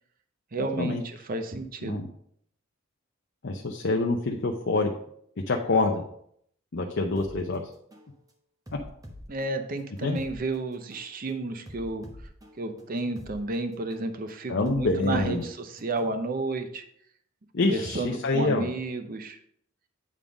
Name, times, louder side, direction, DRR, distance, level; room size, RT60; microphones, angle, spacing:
voice 1, 0.5-2.0 9.3-12.0 12.6-16.8 17.6-19.4, right 2 dB, 45° right, 8 dB, 0.7 m, -32 dB
voice 2, 3.4-4.9 5.5-6.0 6.7-7.6 10.0-10.2 14.5-15.5 17.5-18.6, left 3 dB, 60° left, 2 dB, 0.7 m, -26 dB
sound 1, 7.2-7.4 7.9-8.1 8.7-10.4 10.9-11.1 11.7-13.4 13.9-14.1 14.7-16.2, left 1 dB, 15° right, 0.9 m, -46 dB
8.6 x 3.7 x 5.1 m, 0.67 s
head